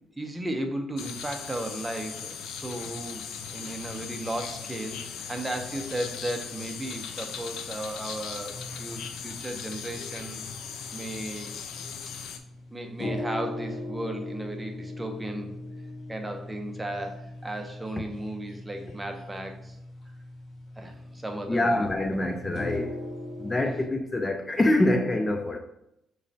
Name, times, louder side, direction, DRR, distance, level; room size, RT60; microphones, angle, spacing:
voice 1, 0.2-10.4 10.9-11.6 12.7-15.5 16.1-19.8 20.8-22.2, right 1 dB, 15° right, 0.7 m, -35 dB
sound 1, 1.0-12.4, left 7 dB, 80° left, 0.4 m, -38 dB
sound 2, 8.5-23.9, left 1 dB, 45° left, 1.4 m, -40 dB
voice 2, 21.5-23.0 23.4-25.6, left 1 dB, 20° left, 0.4 m, -25 dB
6.2 x 3.1 x 2.8 m
cardioid pair, 90°, 0 cm